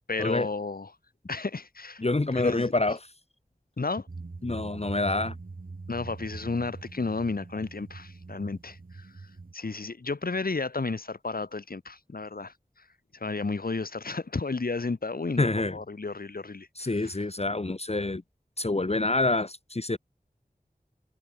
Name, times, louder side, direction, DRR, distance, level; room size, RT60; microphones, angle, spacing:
voice 1, 0.1-0.9 1.3-2.0 2.3-2.7 3.8-4.1 5.9-9.1 9.5-12.5 13.2-17.1, left 3 dB, 75° left, 1.3 m, -32 dB
voice 2, 2.0-3.1 4.4-5.3 15.4-15.8 16.8-18.2 18.6-20.0, left 2 dB, 45° left, 1.3 m, -27 dB
sound 1, 4.1-9.5, right 3 dB, 70° right, 1.3 m, -43 dB
wide cardioid pair, 55°, 15 cm